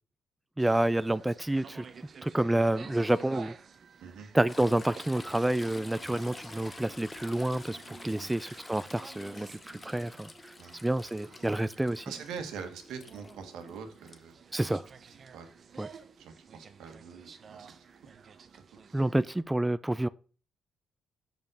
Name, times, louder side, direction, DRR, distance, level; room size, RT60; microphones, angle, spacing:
voice 1, 0.6-1.8 2.2-3.5 4.3-10.5 10.8-12.1 14.5-14.9 15.8-15.9 18.9-20.1, right 1 dB, 10° right, 0.4 m, -29 dB
sound 1, 0.6-19.4, right 6 dB, 50° right, 0.8 m, -52 dB
Toilet flush / Trickle dribble, 4.5-14.2 16.0-16.1, left 3 dB, 25° left, 0.9 m, -49 dB
voice 2, 12.0-14.4 15.3-15.5 16.2-17.8, right 6 dB, 85° right, 1.8 m, -43 dB
7.0 x 5.4 x 6.3 m
cardioid pair, 90°, 0 cm